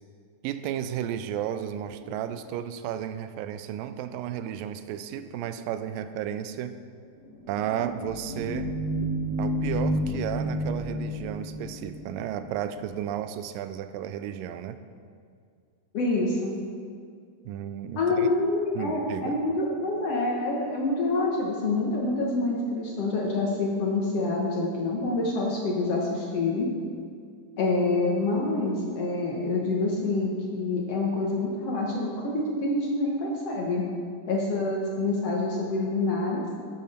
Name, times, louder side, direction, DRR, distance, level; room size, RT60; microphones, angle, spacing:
voice 1, 0.4-6.8 7.5-8.7 9.4-14.8 17.5-18.3 18.8-19.4, right 10 dB, 85° right, 11 dB, 2.2 m, -33 dB
sound 1, 7.2-12.7, equal, 55° right, 2.8 m, -31 dB
voice 2, 15.9-16.6 18.0-26.7 27.6-33.9 34.3-36.4, left 2 dB, 60° left, -2 dB, 1.8 m, -27 dB
12.0 x 8.7 x 4.2 m, 2.2 s
omnidirectional pair, 3.9 m